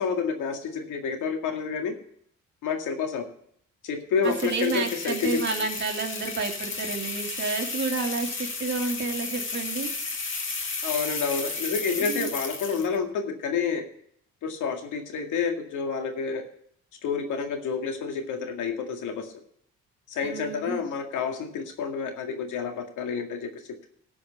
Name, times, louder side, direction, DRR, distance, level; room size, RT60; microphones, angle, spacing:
voice 1, 0.0-1.9 2.6-3.3 3.8-5.4 10.8-13.8 14.4-16.4 17.0-19.3 20.1-23.9, left 5 dB, 85° left, 4 dB, 2.1 m, -29 dB
sound 1, 4.2-13.0, left 4 dB, 40° left, 2.2 m, -33 dB
voice 2, 4.2-9.9 12.0-12.3 20.2-20.8, right 4 dB, 35° right, -1 dB, 2.4 m, -30 dB
14.0 x 5.0 x 8.1 m, 0.64 s
cardioid pair, 90°, 30 cm